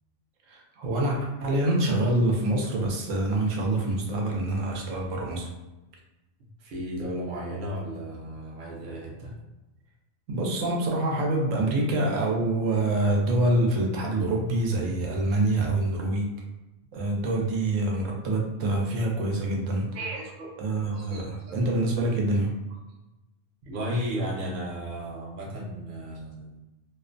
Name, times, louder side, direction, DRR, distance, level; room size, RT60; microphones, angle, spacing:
voice 1, 0.5-5.5 10.3-16.3 16.9-19.9 20.6-22.5, right 2 dB, 85° right, 0 dB, 0.9 m, -26 dB
voice 2, 6.6-9.3 19.9-20.5 20.9-21.6 23.6-26.6, equal, 50° right, -3 dB, 0.7 m, -34 dB
2.5 x 2.1 x 2.5 m, 1.0 s
omnidirectional pair, 1.3 m